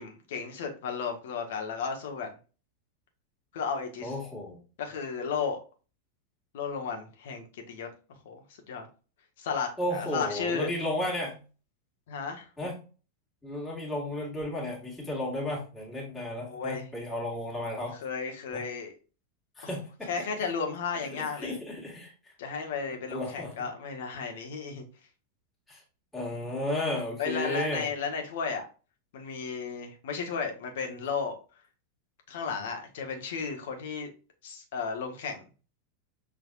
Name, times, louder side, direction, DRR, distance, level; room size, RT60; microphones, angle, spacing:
voice 1, 0.0-2.3 3.5-4.1 4.8-5.6 6.5-7.9 8.2-8.4 8.7-8.9 9.4-10.7 12.1-12.5 16.4-16.9 17.9-18.9 19.6-19.7 20.1-21.6 22.4-24.8 27.2-28.7 29.1-31.4 32.3-34.1 34.4-35.5, left 5 dB, 55° left, 4 dB, 1.3 m, -34 dB
voice 2, 4.0-4.6 9.8-11.4 12.6-12.8 13.4-18.0 18.5-18.6 19.6-20.1 21.1-22.1 23.1-23.5 25.7-25.8 26.1-27.9, left 1 dB, 10° left, -3 dB, 2.0 m, -33 dB
6.1 x 3.3 x 2.5 m, 0.35 s
figure-of-eight pair, 90°, 0 cm